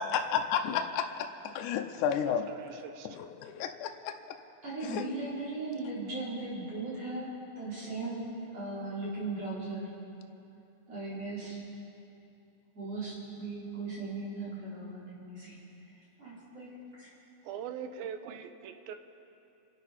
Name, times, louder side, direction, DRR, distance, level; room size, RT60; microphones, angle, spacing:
voice 1, 0.0-2.5 3.1-4.2 4.8-5.1, left 8 dB, 75° left, 5 dB, 1.9 m, -32 dB
voice 2, 2.3-3.2 11.4-11.5 17.4-19.0, right 8 dB, 90° right, 8 dB, 2.7 m, -42 dB
voice 3, 4.6-9.9 10.9-11.6 12.7-15.6 16.2-17.1, right 3 dB, 45° right, -8 dB, 5.2 m, -38 dB
28.0 x 12.0 x 4.2 m, 2.8 s
omnidirectional pair, 4.1 m